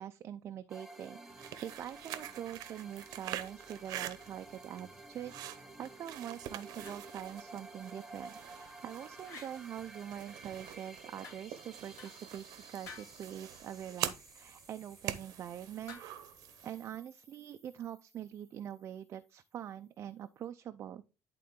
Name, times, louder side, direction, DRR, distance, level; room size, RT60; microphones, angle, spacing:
voice 1, 0.0-16.0 16.6-21.0, right 10 dB, 40° right, 0.4 m, -44 dB
sound 1, 0.7-19.2, right 2 dB, 5° right, 0.9 m, -54 dB
sound 2, 1.3-16.9, right 12 dB, 60° right, 0.8 m, -45 dB
sound 3, 6.3-7.0 8.4-8.8 9.2-9.5 11.2-11.6 12.0-12.4 12.8-13.2 15.9-16.3, left 4 dB, 45° left, 3.2 m, -52 dB
11.0 x 3.7 x 3.7 m
cardioid pair, 145°, 7 cm